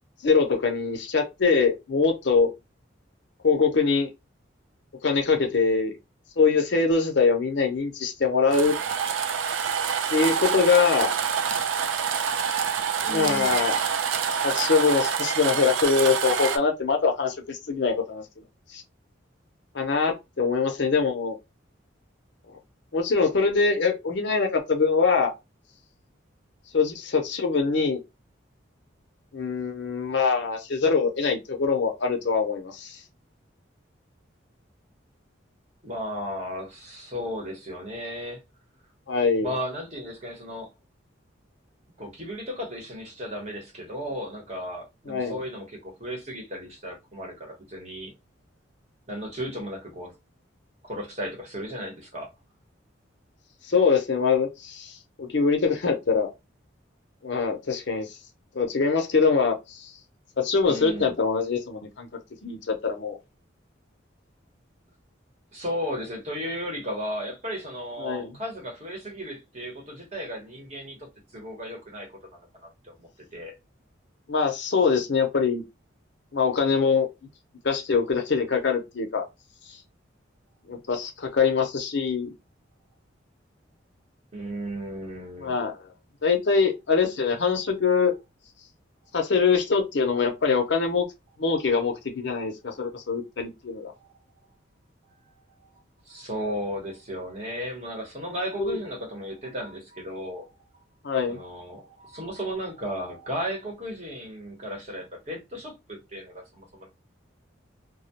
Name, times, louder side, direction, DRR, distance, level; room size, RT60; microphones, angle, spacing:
voice 1, 0.2-2.5 3.4-4.1 5.0-6.0 6.4-8.8 10.1-11.1 13.1-13.8 14.4-18.2 18.7-18.8 19.7-21.4 22.9-25.3 26.7-28.0 29.3-33.0 39.1-39.5 45.1-45.4 53.6-56.3 57.2-58.2 58.5-59.9 60.4-62.1 62.4-63.2 68.0-68.3 74.3-75.6 76.3-77.1 77.6-79.3 79.7-79.8 80.7-82.3 85.4-85.8 86.2-88.1 89.1-91.1 91.4-93.9 98.6-98.8 101.0-101.4, left 5 dB, 65° left, 0.6 m, -23 dB
sound 1, 8.5-16.6, right 7 dB, 75° right, 0.3 m, -27 dB
voice 2, 13.0-13.6 35.8-38.4 39.4-40.7 42.0-48.1 49.1-50.1 50.8-52.3 60.7-61.1 65.5-71.1 71.3-73.5 84.3-85.6 91.6-91.7 92.9-93.0 93.9-94.5 95.0-95.2 95.6-95.8 96.1-100.5 101.3-106.9, equal, 35° right, 0.9 m, -35 dB
2.2 x 2.1 x 2.7 m
head